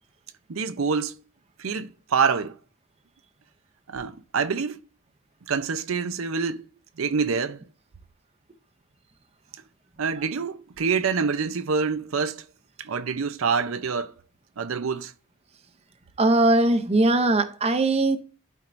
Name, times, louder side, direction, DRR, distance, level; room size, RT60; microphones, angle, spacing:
voice 1, 0.5-1.1 1.6-2.6 3.9-4.8 5.5-6.6 7.0-7.6 10.0-12.4 12.8-14.1 14.6-15.1, right 5 dB, 90° right, 0.6 m, -26 dB
voice 2, 16.2-18.2, right 2 dB, 30° right, 0.6 m, -20 dB
12.0 x 4.4 x 2.6 m
head